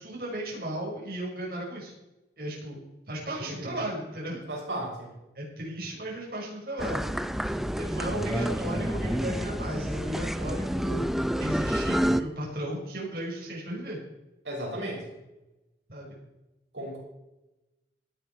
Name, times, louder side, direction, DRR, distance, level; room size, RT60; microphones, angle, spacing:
voice 1, 0.0-1.9 2.4-2.8 3.1-4.4 5.4-7.1 7.5-11.1 11.4-14.0 15.9-16.2, right 1 dB, 55° right, -3 dB, 5.5 m, -35 dB
voice 2, 3.4-3.8 4.5-5.1 14.4-15.0 16.7-17.0, right 1 dB, 85° right, -3 dB, 5.9 m, -35 dB
sound 1, 6.8-12.2, equal, ahead, 0.5 m, -29 dB
17.5 x 10.5 x 4.6 m, 0.98 s
head